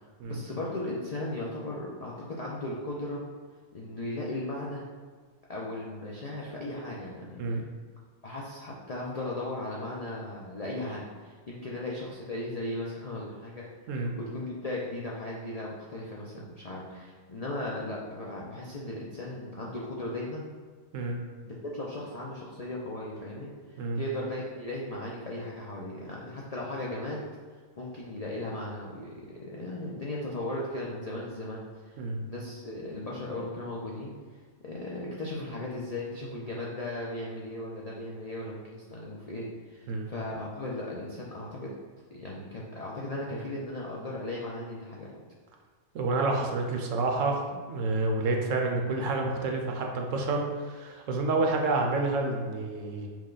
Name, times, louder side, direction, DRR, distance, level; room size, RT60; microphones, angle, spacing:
voice 1, 0.3-3.2 3.7-4.8 5.5-7.5 8.2-13.7 13.9-20.4 21.4-27.2 27.8-34.1 34.6-41.7 42.1-45.1, left 1 dB, 60° left, -4 dB, 0.4 m, -37 dB
voice 2, 45.9-53.1, right 3 dB, 70° right, 2 dB, 0.9 m, -29 dB
6.1 x 2.2 x 3.8 m, 1.5 s
omnidirectional pair, 1.5 m